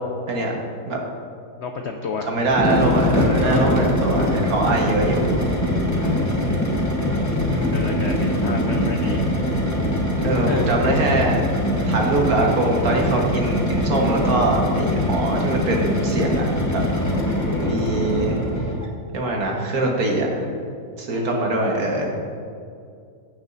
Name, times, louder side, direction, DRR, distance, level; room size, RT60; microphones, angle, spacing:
voice 1, 1.6-2.3 3.4-4.0 5.6-6.3 7.7-9.3 10.5-10.7 17.0-17.8 21.1-21.5, left 4 dB, 70° left, 4 dB, 0.6 m, -32 dB
voice 2, 2.3-5.2 7.5-7.9 10.2-11.4 11.9-16.4 16.7-16.8 17.7-18.4 19.1-20.5 21.0-22.2, right 2 dB, 65° right, -1 dB, 1.7 m, -22 dB
sound 1, 2.5-18.9, left 1 dB, 15° left, 0.7 m, -22 dB
16.0 x 6.2 x 2.7 m, 2.4 s
omnidirectional pair, 1.7 m